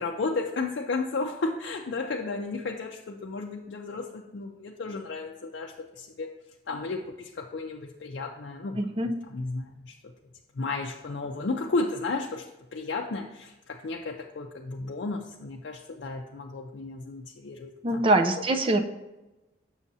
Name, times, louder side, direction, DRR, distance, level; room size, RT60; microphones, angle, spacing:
voice 1, 0.0-6.3 6.7-8.8 9.3-10.0 10.6-12.5 12.7-18.0 18.4-18.5, left 3 dB, 70° left, 1 dB, 0.5 m, -33 dB
voice 2, 8.8-9.1 17.8-18.8, right 2 dB, 30° right, 6 dB, 0.4 m, -23 dB
7.1 x 6.3 x 2.7 m, 1.0 s
head